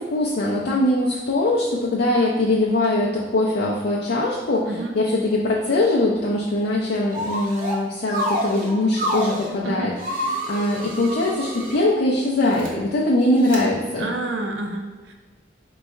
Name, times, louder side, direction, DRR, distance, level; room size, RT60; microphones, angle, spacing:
voice 1, 0.0-9.9 10.2-14.1, left 1 dB, 55° left, -4 dB, 0.5 m, -22 dB
sound 1, 7.1-7.8 8.1-9.5 10.0-11.8 12.4-12.7 13.4-13.6, equal, 50° right, 0.7 m, -28 dB
voice 2, 14.0-15.1, right 2 dB, 80° right, 2 dB, 0.5 m, -29 dB
3.9 x 2.3 x 4.4 m, 1.2 s
head